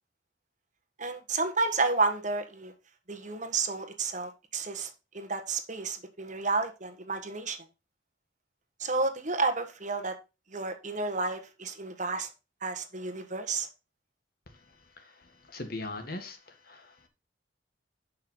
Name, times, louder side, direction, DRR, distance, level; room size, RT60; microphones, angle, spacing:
voice 1, 1.0-2.7 3.1-7.6 8.8-10.1 10.5-12.3 12.6-13.7, right 3 dB, 40° right, 1.4 m, -31 dB
voice 2, 15.5-16.9, left 2 dB, 50° left, 1.8 m, -39 dB
11.5 x 5.7 x 3.8 m
head